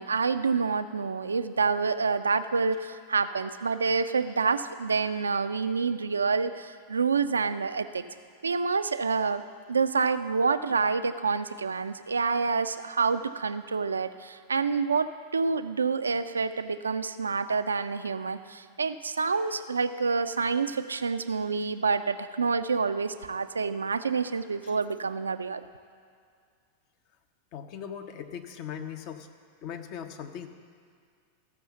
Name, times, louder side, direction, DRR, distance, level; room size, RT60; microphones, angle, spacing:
voice 1, 0.0-8.0 8.4-9.4 9.7-25.6, right 4 dB, 75° right, 10 dB, 0.4 m, -28 dB
voice 2, 27.5-29.3 29.6-30.5, left 8 dB, 45° left, 6 dB, 0.8 m, -39 dB
14.5 x 6.1 x 6.8 m, 2.2 s
figure-of-eight pair, 90°, 0 cm